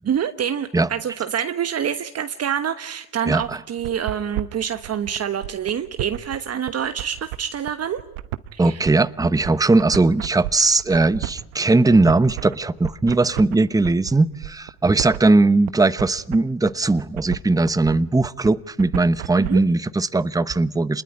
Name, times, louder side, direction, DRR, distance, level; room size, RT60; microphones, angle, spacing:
voice 1, 0.0-8.0 8.5-8.9 19.4-19.6, right 8 dB, 45° right, 1.3 m, -26 dB
voice 2, 3.3-3.6 8.6-21.0, right 3 dB, 10° right, 0.9 m, -19 dB
sound 1, 3.4-19.5, right 16 dB, 90° right, 1.0 m, -33 dB
27.5 x 20.5 x 9.9 m
supercardioid pair, 75°, 36 cm